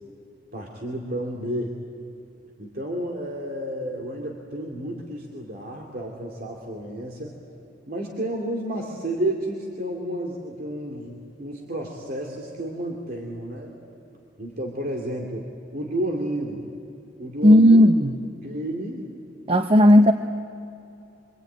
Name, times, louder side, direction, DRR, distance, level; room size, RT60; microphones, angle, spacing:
voice 1, 0.5-1.8 2.6-7.3 7.9-11.1 11.4-13.7 14.4-15.5 15.7-16.7 17.2-17.9 18.4-19.1, right 1 dB, 55° right, 0 dB, 2.5 m, -31 dB
voice 2, 17.4-18.1 19.5-20.1, equal, 30° right, 7 dB, 0.8 m, -14 dB
25.5 x 25.0 x 9.3 m, 2.8 s
head